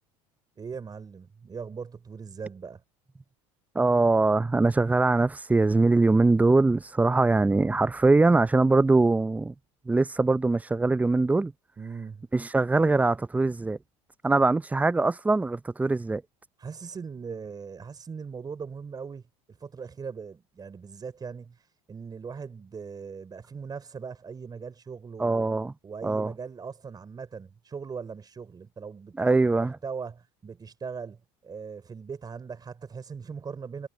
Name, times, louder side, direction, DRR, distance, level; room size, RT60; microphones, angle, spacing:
voice 1, 0.6-2.8 11.8-12.2 16.6-21.6 21.9-25.5 25.8-33.9, right 5 dB, 25° right, 4.1 m, -40 dB
voice 2, 3.7-9.5 9.9-11.5 12.3-13.8 14.2-16.2 25.2-25.7 26.0-26.3 29.2-29.8, right 3 dB, 10° right, 0.5 m, -22 dB
supercardioid pair, 90°, 15 cm